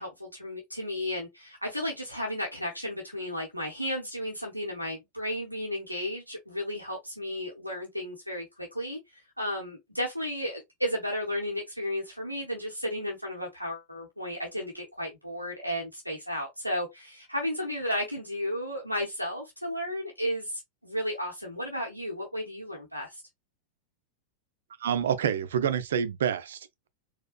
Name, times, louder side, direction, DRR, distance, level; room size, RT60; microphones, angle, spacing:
voice 1, 0.0-23.2, equal, 90° left, 0.8 m, -33 dB
voice 2, 24.8-26.9, right 8 dB, 60° right, 0.4 m, -28 dB
4.2 x 2.2 x 2.3 m
figure-of-eight pair, 90°, 0 cm